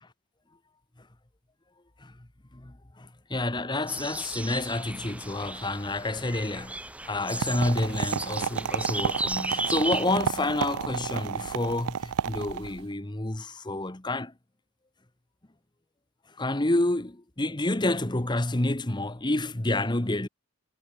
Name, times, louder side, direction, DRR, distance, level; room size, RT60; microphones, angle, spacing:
voice 1, 2.5-14.3 16.3-20.3, left 2 dB, 20° left, 1.1 m, -29 dB
sound 1, 3.9-10.1, right 2 dB, 5° right, 4.3 m, -35 dB
sound 2, 7.4-12.8, right 7 dB, 80° right, 0.5 m, -31 dB
head